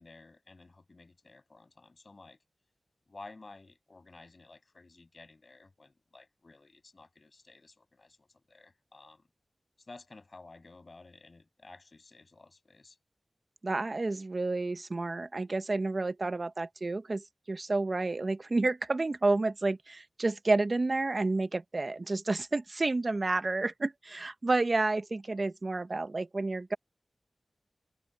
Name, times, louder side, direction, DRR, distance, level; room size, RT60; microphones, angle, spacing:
voice 1, 0.0-2.4 3.1-9.3 9.8-13.0, left 3 dB, 50° left, 7.3 m, -53 dB
voice 2, 13.6-26.8, right 2 dB, 50° right, 0.9 m, -30 dB
wide cardioid pair, 50°, 0 cm